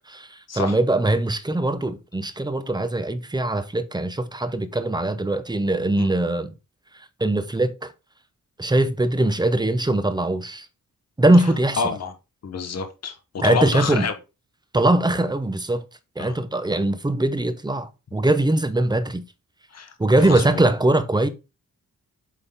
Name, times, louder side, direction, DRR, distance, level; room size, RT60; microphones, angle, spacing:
voice 1, 0.1-6.5 6.9-7.9 8.6-10.7 11.2-11.8 13.4-14.1 14.7-15.8 16.2-19.2 20.0-21.3, right 2 dB, 10° right, 0.7 m, -21 dB
voice 2, 11.8-12.1 12.4-14.1 16.2-16.3 19.7-20.6, left 5 dB, 50° left, 1.0 m, -28 dB
8.0 x 3.8 x 3.5 m
wide cardioid pair, 115°, 34 cm